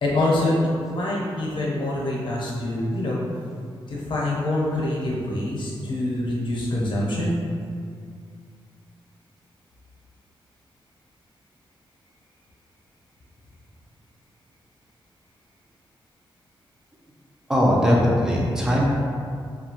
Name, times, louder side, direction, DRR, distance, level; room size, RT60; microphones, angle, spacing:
voice 1, 0.0-0.5 0.9-3.2 3.9-7.4, left 1 dB, 60° left, -4 dB, 0.7 m, -25 dB
voice 2, 17.5-18.9, equal, 5° right, -4 dB, 0.5 m, -19 dB
2.8 x 2.2 x 2.8 m, 2.3 s
cardioid pair, 95°, 9 cm